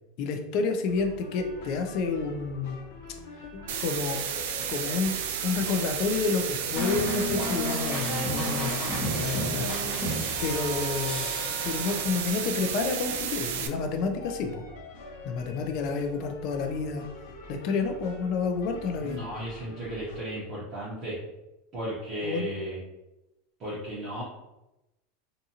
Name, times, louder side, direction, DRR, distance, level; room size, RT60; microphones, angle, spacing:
voice 1, 0.2-2.8 3.4-4.2 4.7-5.1 5.4-10.1 10.4-11.3 11.6-14.6 15.2-17.0 17.5-19.2 22.2-22.5, left 4 dB, 45° left, 5 dB, 0.4 m, -30 dB
sound 1, 0.9-20.2, left 1 dB, 80° left, 0.7 m, -45 dB
sound 2, 3.7-13.7, right 8 dB, 75° right, 0.3 m, -32 dB
sound 3, 6.8-12.4, left 1 dB, 15° left, 1.0 m, -32 dB
voice 2, 19.0-21.2 21.7-22.8 23.6-24.2, equal, 30° right, -10 dB, 0.8 m, -35 dB
2.6 x 2.4 x 2.7 m, 0.96 s
supercardioid pair, 160°, 0 cm